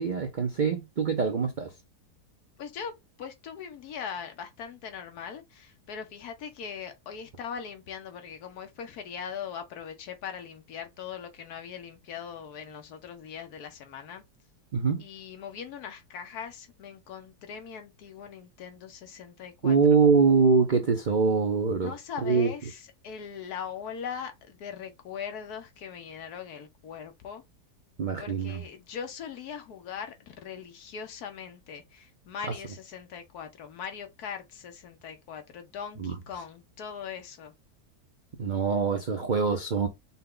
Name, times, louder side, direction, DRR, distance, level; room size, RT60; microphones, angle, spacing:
voice 1, 0.0-1.7 14.7-15.0 19.6-21.9 22.2-22.5 28.0-28.6 36.0-36.1 38.4-39.9, right 5 dB, 85° right, 0.4 m, -24 dB
voice 2, 2.6-14.2 15.0-20.0 21.7-27.4 28.2-37.5, left 7 dB, 70° left, 1.3 m, -40 dB
5.5 x 2.2 x 3.7 m
omnidirectional pair, 1.8 m